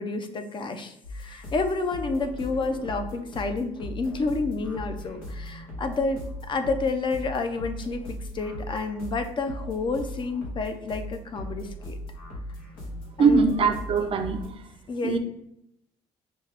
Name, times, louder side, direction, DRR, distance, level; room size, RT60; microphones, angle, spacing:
voice 1, 0.0-12.0 13.2-13.5 14.0-14.1 14.9-15.2, left 3 dB, 35° left, 8 dB, 0.6 m, -30 dB
sound 1, 1.0-14.5, equal, 90° left, 1.3 m, -38 dB
voice 2, 13.2-14.4 15.0-15.2, right 4 dB, 45° right, 7 dB, 0.5 m, -21 dB
5.1 x 2.3 x 3.4 m, 0.78 s
supercardioid pair, 90°, 14 cm